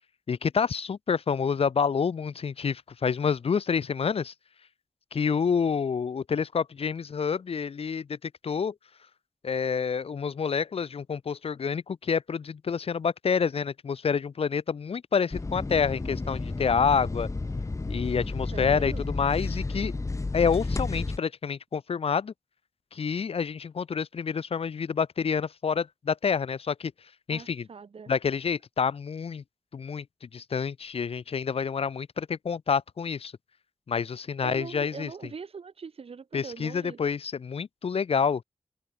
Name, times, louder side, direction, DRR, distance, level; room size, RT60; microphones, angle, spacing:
voice 1, 0.3-4.3 5.1-8.7 9.4-17.3 17.9-19.9 20.3-22.3 22.9-26.9 27.3-27.7 28.1-29.4 29.7-33.3 33.9-35.1 36.3-38.4, left 6 dB, 75° left, 1.2 m, -28 dB
sound 1, 15.3-21.2, left 3 dB, 30° left, 0.9 m, -32 dB
voice 2, 18.5-19.1 27.3-28.1 34.4-37.0, right 5 dB, 70° right, 2.9 m, -41 dB
wide cardioid pair, 70°, 10 cm